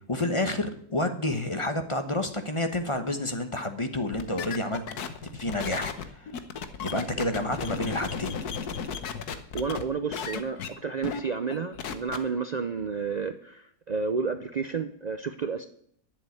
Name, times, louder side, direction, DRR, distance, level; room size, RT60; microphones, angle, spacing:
voice 1, 0.1-4.8 5.3-6.3 6.8-8.4, left 1 dB, 25° left, 8 dB, 1.0 m, -29 dB
sound 1, 4.1-9.8 10.1-10.7 11.0-11.2 11.5-12.2, left 6 dB, 80° left, 1.5 m, -34 dB
voice 2, 9.3-15.7, right 5 dB, 70° right, 9 dB, 0.4 m, -31 dB
10.5 x 7.4 x 9.5 m, 0.65 s
omnidirectional pair, 1.6 m